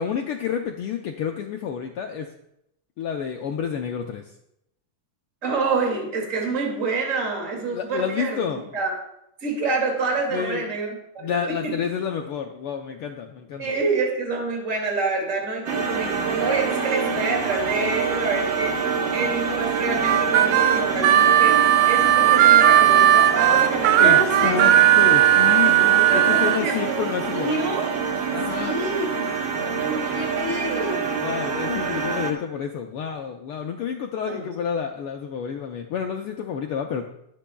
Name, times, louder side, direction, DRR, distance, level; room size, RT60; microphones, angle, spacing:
voice 1, 0.0-2.3 3.0-4.2 7.7-8.7 10.3-10.7 11.2-13.7 24.0-27.6 28.3-28.8 29.5-30.3 31.2-37.1, left 7 dB, 85° left, 3 dB, 1.2 m, -29 dB
voice 2, 5.4-8.9 9.4-11.7 13.6-18.8 19.1-24.6 26.1-27.9 28.5-29.4 29.8-31.1 34.2-34.5, right 3 dB, 30° right, 0 dB, 2.5 m, -27 dB
sound 1, 15.7-32.3, right 5 dB, 50° right, 1.8 m, -26 dB
Harmonica, 20.0-26.6, right 12 dB, 80° right, 1.8 m, -16 dB
22.0 x 8.5 x 2.3 m, 0.79 s
omnidirectional pair, 3.3 m